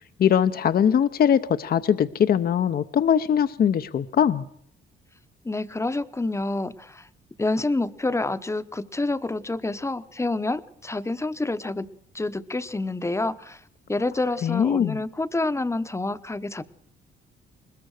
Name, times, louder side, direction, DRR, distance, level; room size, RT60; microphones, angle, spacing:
voice 1, 0.2-4.4 14.4-15.0, left 8 dB, 50° left, 12 dB, 0.7 m, -21 dB
voice 2, 5.4-7.1 7.4-11.9 12.1-13.6 13.9-16.7, left 2 dB, 15° left, 12 dB, 0.9 m, -28 dB
20.5 x 20.5 x 6.5 m, 0.68 s
cardioid pair, 90°, 20 cm